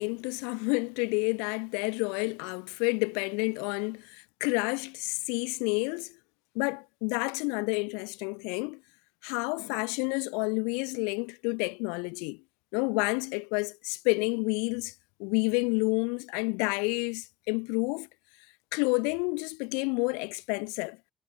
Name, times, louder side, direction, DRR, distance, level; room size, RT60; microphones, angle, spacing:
voice 1, 0.0-6.1 6.6-8.8 9.2-12.4 12.7-14.9 15.2-18.1 18.7-21.0, left 35 dB, 75° left, 5.3 m, -29 dB
figure-of-eight pair, 40°, 0 cm